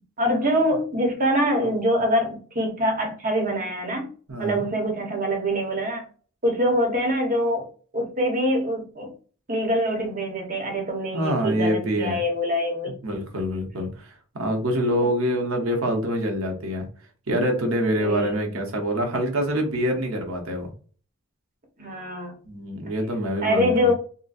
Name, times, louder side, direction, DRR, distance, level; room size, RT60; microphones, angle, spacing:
voice 1, 0.2-4.1 4.4-6.0 6.4-7.7 7.9-9.1 9.5-12.9 18.0-18.3 21.8-22.3 23.4-23.9, equal, 40° right, 1 dB, 1.0 m, -24 dB
voice 2, 4.3-4.6 11.1-12.2 13.0-16.9 17.3-20.7 22.5-23.9, equal, 65° right, 3 dB, 0.9 m, -25 dB
3.9 x 2.2 x 2.5 m, 0.39 s
head